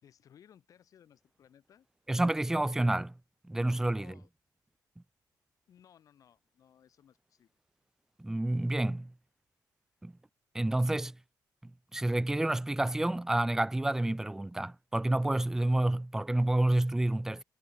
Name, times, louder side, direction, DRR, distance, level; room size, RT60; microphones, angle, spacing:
voice 1, 0.0-1.9 4.0-4.3 5.7-7.5, left 9 dB, 50° left, 5.3 m, -61 dB
voice 2, 2.1-3.1 3.5-4.1 8.2-9.1 10.0-10.1 10.5-11.2 11.6-17.4, right 1 dB, 5° right, 0.7 m, -29 dB
cardioid pair, 175°, 7 cm